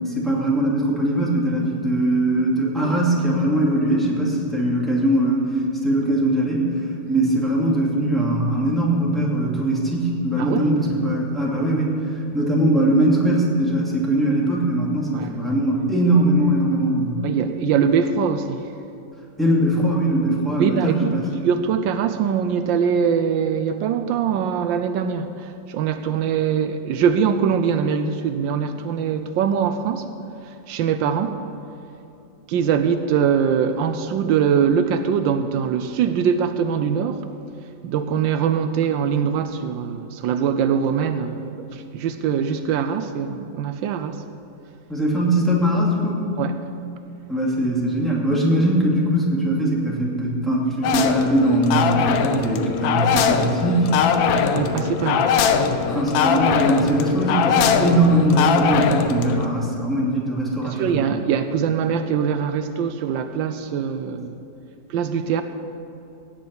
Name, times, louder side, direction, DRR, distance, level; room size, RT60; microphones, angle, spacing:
voice 1, 0.0-5.5 5.8-6.8 7.1-11.9 12.3-17.2 19.4-21.3 44.9-46.2 47.3-53.9 55.8-61.1, right 1 dB, ahead, -4 dB, 2.3 m, -21 dB
voice 2, 17.2-18.7 20.6-21.1 21.4-30.1 30.7-31.4 32.5-37.2 37.8-44.2 46.4-46.6 54.5-55.3 60.6-64.4 64.9-65.4, right 7 dB, 80° right, 9 dB, 1.3 m, -22 dB
sound 1, 50.8-59.5, left 6 dB, 85° left, 1.5 m, -21 dB
17.0 x 5.8 x 8.3 m, 2.8 s
omnidirectional pair, 2.0 m